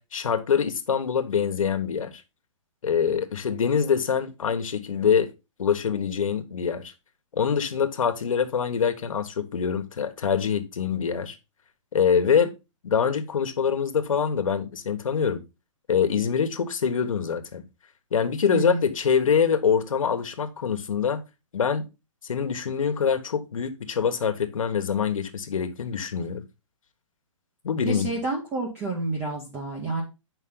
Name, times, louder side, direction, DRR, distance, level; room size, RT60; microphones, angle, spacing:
voice 1, 0.0-2.1 2.8-5.3 5.6-6.9 7.3-11.4 11.9-12.5 12.8-15.4 15.9-17.6 18.1-21.2 21.5-21.8 22.3-26.4 27.6-28.1, left 7 dB, 80° left, 1.4 m, -24 dB
voice 2, 27.8-30.0, right 3 dB, 15° right, 1.0 m, -29 dB
8.3 x 5.4 x 3.8 m
hypercardioid pair, 170°, 17 cm